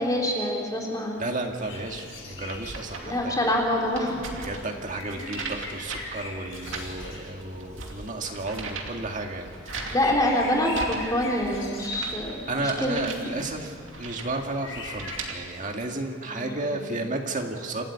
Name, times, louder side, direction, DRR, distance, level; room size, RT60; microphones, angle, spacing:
voice 1, 0.0-1.2 3.0-4.3 5.1-5.4 9.9-13.0 13.3-13.4 16.3-16.8, left 1 dB, 20° left, -1 dB, 3.4 m, -26 dB
voice 2, 1.2-3.3 4.4-9.5 9.8-9.9 12.5-13.7 14.0-17.8, right 2 dB, 40° right, 3 dB, 2.0 m, -32 dB
sound 1, 1.6-15.2, left 3 dB, 75° left, 6.6 m, -43 dB
sound 2, 1.7-15.3, right 3 dB, 70° right, 2.6 m, -40 dB
28.0 x 13.0 x 8.5 m, 2.5 s
head